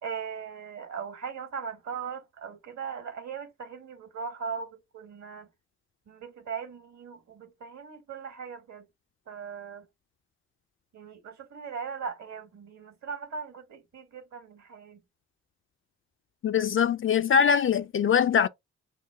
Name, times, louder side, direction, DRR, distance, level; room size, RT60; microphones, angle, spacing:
voice 1, 0.0-5.5 6.1-8.9 9.3-9.9 10.9-15.0, right 6 dB, 55° right, 1.4 m, -39 dB
voice 2, 16.4-18.5, left 7 dB, 40° left, 0.5 m, -22 dB
5.7 x 2.1 x 3.5 m
hypercardioid pair, 40°, 34 cm